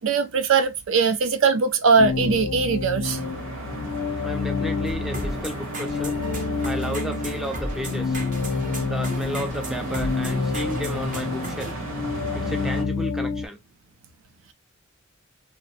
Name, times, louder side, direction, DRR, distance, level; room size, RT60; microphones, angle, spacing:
voice 1, 0.0-3.2, right 5 dB, 65° right, 0.4 m, -20 dB
sound 1, 2.0-13.5, left 4 dB, 75° left, 0.4 m, -29 dB
sound 2, 3.0-12.8, right 2 dB, 85° right, 1.4 m, -36 dB
voice 2, 4.2-6.2 6.6-8.2 8.8-11.7 12.3-13.6, equal, ahead, 0.3 m, -33 dB
sound 3, 4.8-11.7, right 1 dB, 40° right, 0.8 m, -36 dB
2.9 x 2.1 x 2.7 m
head